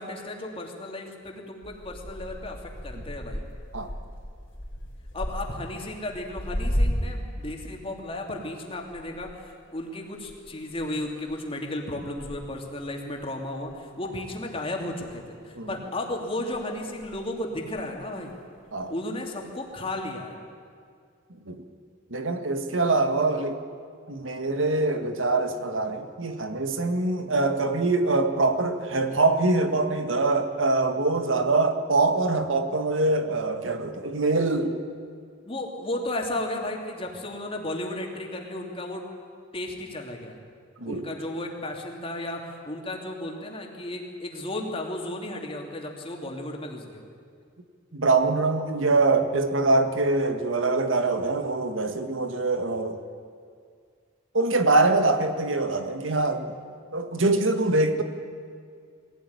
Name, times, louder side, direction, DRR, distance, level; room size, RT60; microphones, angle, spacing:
voice 1, 0.0-3.4 5.1-18.4 18.9-20.4 35.4-39.1 39.5-40.4 40.8-47.0, left 1 dB, 30° left, 1 dB, 3.0 m, -34 dB
sound 1, 1.6-7.4 7.7-14.8 15.1-15.8 16.5-18.4 18.8-19.2 19.9-20.0, equal, 65° left, 4.4 m, -35 dB
voice 2, 22.1-23.6 24.1-34.8 40.8-41.0 47.9-53.0 54.3-56.5 56.9-58.0, right 3 dB, 90° right, 7 dB, 1.8 m, -24 dB
22.0 x 17.0 x 9.7 m, 2.2 s
head